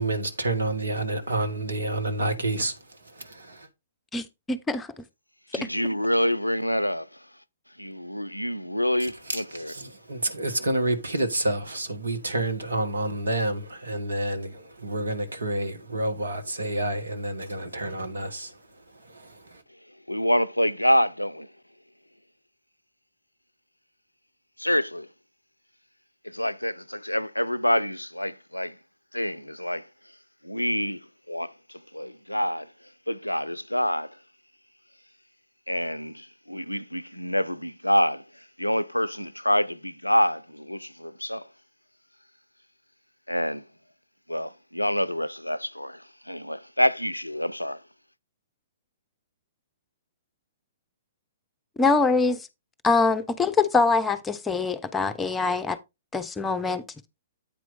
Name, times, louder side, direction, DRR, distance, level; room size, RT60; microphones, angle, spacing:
voice 1, 0.0-3.7 9.3-18.6 18.9-19.6, right 2 dB, 75° right, 1.4 m, -29 dB
voice 2, 4.1-5.0 5.6-5.7 51.8-52.5 52.8-55.8 56.1-56.8, left 4 dB, 10° left, 0.7 m, -24 dB
voice 3, 5.5-7.1 7.8-9.7 20.1-21.5 24.6-25.1 26.2-28.8 29.1-29.9 30.4-31.0 31.3-32.7 33.1-34.1 35.7-38.2 38.6-41.4 43.3-43.6 44.3-47.8, equal, 90° left, 0.4 m, -27 dB
8.8 x 4.5 x 4.1 m
figure-of-eight pair, 115°, 0 cm